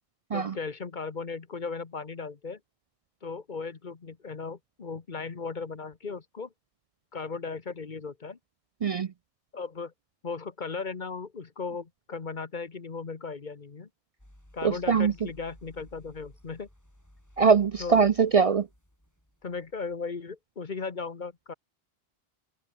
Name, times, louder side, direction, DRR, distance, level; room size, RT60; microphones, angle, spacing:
voice 1, 0.3-2.6 3.2-6.5 7.1-8.4 9.5-9.9 10.2-13.9 14.5-16.7 17.8-18.1 19.4-21.5, left 4 dB, 50° left, 1.3 m, -37 dB
sound 1, 14.2-20.0, equal, 15° left, 5.6 m, -55 dB
voice 2, 14.6-15.1 17.4-18.7, right 6 dB, 50° right, 0.4 m, -22 dB
omnidirectional pair, 1.0 m